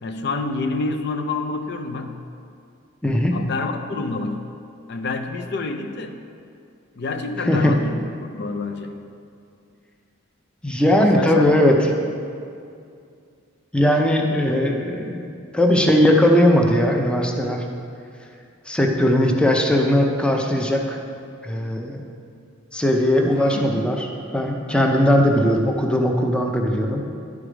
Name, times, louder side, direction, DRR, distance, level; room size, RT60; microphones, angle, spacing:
voice 1, 0.0-2.2 3.3-4.5 4.9-6.2 7.0-9.0 11.1-11.5 11.8-11.9 23.3-24.0, left 3 dB, 55° left, 6 dB, 0.5 m, -28 dB
voice 2, 3.0-3.4 7.4-7.7 10.6-11.9 13.7-17.6 18.7-21.0 21.4-22.1 22.7-24.1 24.3-27.0, left 1 dB, 5° left, 1 dB, 0.6 m, -19 dB
11.0 x 4.8 x 4.9 m, 2.4 s
head